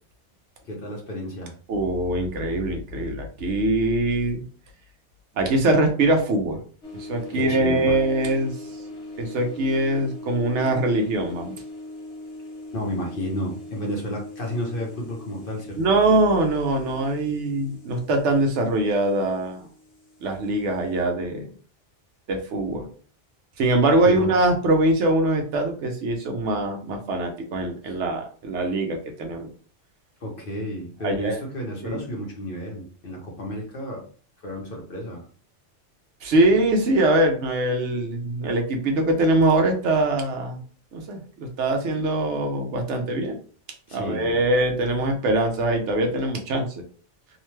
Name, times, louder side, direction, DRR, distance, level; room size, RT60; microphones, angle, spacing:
voice 1, 0.7-1.5 7.3-8.0 12.7-16.0 24.0-24.3 27.8-27.9 30.2-34.0 34.4-35.2 43.9-44.4, equal, 50° left, -1 dB, 0.9 m, -32 dB
voice 2, 1.7-4.4 5.4-6.6 7.0-8.5 9.2-11.5 15.8-19.6 20.2-21.5 22.3-22.9 23.6-29.5 31.0-31.4 31.8-32.0 36.2-40.6 40.9-43.4 43.9-46.7, right 2 dB, 70° right, 4 dB, 0.9 m, -22 dB
sound 1, 6.8-21.0, left 2 dB, 70° left, 1.1 m, -41 dB
2.7 x 2.1 x 3.0 m, 0.42 s
omnidirectional pair, 1.2 m